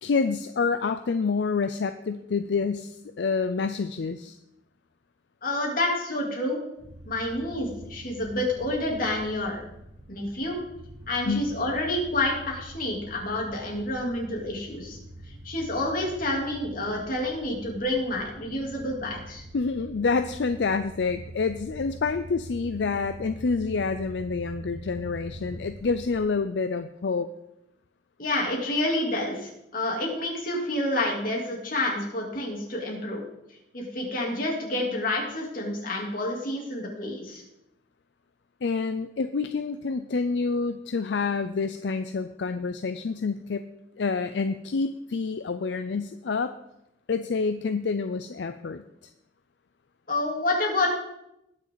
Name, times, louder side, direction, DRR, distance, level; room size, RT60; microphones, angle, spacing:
voice 1, 0.0-4.4 11.3-11.5 19.5-27.3 38.6-43.7 44.0-46.5 47.1-48.8, left 4 dB, 80° left, 10 dB, 0.5 m, -28 dB
voice 2, 5.4-6.6 7.0-9.6 10.1-10.6 11.1-15.0 15.3-19.4 28.2-33.2 33.7-37.4 50.1-50.9, left 1 dB, 55° left, -1 dB, 3.2 m, -28 dB
sound 1, 6.8-26.2, right 1 dB, 20° right, 2.5 m, -44 dB
19.5 x 6.6 x 4.0 m, 0.85 s
head